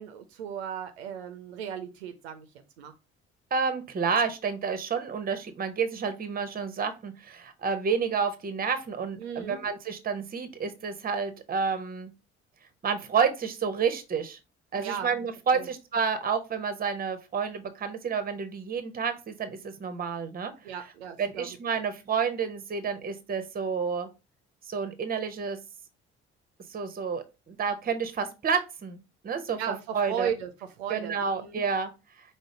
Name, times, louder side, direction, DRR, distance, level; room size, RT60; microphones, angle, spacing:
voice 1, 0.0-2.9 9.1-9.6 14.8-15.1 15.5-15.7 20.6-21.8 29.6-30.5 30.8-31.6, right 8 dB, 75° right, 7 dB, 0.5 m, -36 dB
voice 2, 3.5-12.1 12.8-14.4 14.7-20.7 21.2-24.1 24.7-25.6 26.7-29.6 29.9-30.3 30.9-31.9, right 6 dB, 30° right, 10 dB, 0.7 m, -30 dB
4.9 x 2.0 x 3.8 m, 0.27 s
figure-of-eight pair, 50°, 32 cm